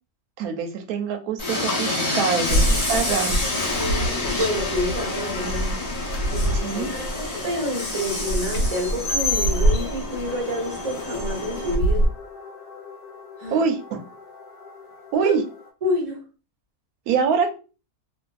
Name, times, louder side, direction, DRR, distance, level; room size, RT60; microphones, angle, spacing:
voice 1, 0.4-3.4 6.5-6.9 13.5-14.0 15.1-15.4 17.1-17.5, right 6 dB, 75° right, 5 dB, 1.0 m, -24 dB
Train, 1.4-11.7, left 2 dB, 35° left, 0.7 m, -28 dB
sound 1, 2.5-12.1, right 1 dB, 80° left, 1.3 m, -26 dB
voice 2, 3.7-5.8 6.3-12.0 13.4-13.7 15.2-15.3 15.8-16.2, left 1 dB, 35° right, -1 dB, 0.7 m, -28 dB
sound 2, 10.2-15.7, left 4 dB, 60° left, 1.0 m, -42 dB
2.6 x 2.5 x 2.3 m, 0.33 s
omnidirectional pair, 1.6 m